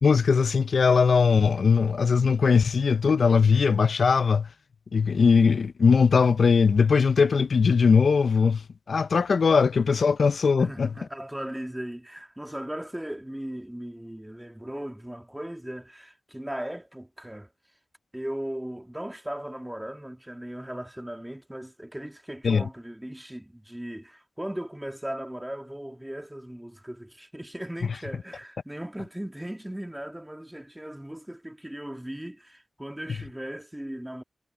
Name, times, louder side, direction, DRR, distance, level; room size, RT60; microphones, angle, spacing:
voice 1, 0.0-4.5 4.9-8.6 8.9-10.9 22.4-22.6, left 5 dB, 70° left, 0.5 m, -20 dB
voice 2, 10.6-17.5 18.1-34.2, right 1 dB, 10° right, 1.7 m, -37 dB
wide cardioid pair, 115°, 0 cm